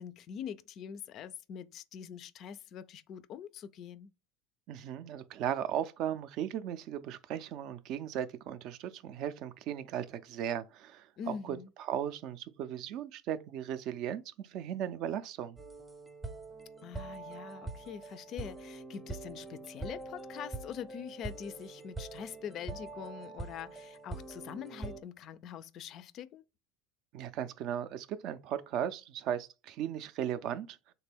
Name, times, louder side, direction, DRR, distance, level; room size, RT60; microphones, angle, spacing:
voice 1, 0.0-4.1 11.2-11.7 16.8-26.4, left 8 dB, 50° left, 0.3 m, -44 dB
voice 2, 4.7-11.6 11.9-15.6 27.1-30.8, right 10 dB, 55° right, 0.3 m, -37 dB
sound 1, 15.6-25.0, right 2 dB, 10° right, 0.6 m, -44 dB
3.4 x 2.2 x 3.3 m
hypercardioid pair, 95°, 0 cm